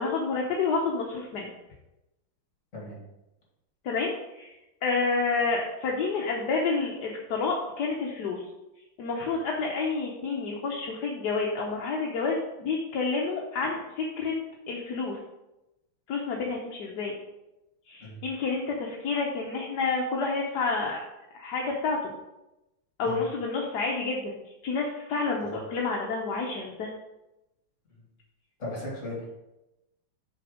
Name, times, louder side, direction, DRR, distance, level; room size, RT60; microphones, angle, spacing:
voice 1, 0.0-1.5 3.8-4.5 4.8-8.4 9.0-14.3 14.7-15.2 16.1-17.1 17.9-21.0 21.3-22.1 23.0-24.3 24.6-26.9, left 4 dB, 60° left, -1 dB, 1.2 m, -29 dB
voice 2, 28.6-29.3, left 2 dB, 35° left, -5 dB, 3.0 m, -37 dB
6.5 x 4.3 x 5.0 m, 0.95 s
omnidirectional pair, 2.3 m